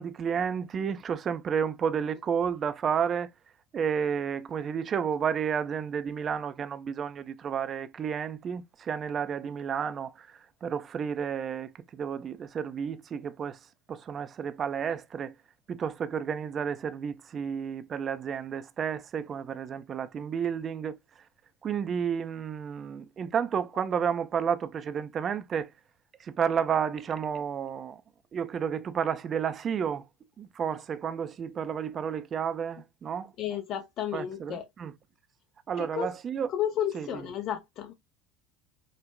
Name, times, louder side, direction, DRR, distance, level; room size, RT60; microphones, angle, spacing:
voice 1, 0.0-3.3 3.7-13.6 13.9-15.3 15.7-21.0 21.6-25.7 26.2-28.0 28.3-30.0 30.4-33.3 34.1-34.9 35.7-36.5 36.9-37.1, right 7 dB, 35° right, 0.4 m, -31 dB
voice 2, 33.4-34.6 35.8-36.1 36.5-37.9, left 10 dB, 45° left, 0.6 m, -32 dB
5.2 x 2.0 x 2.2 m
figure-of-eight pair, 70°, 0 cm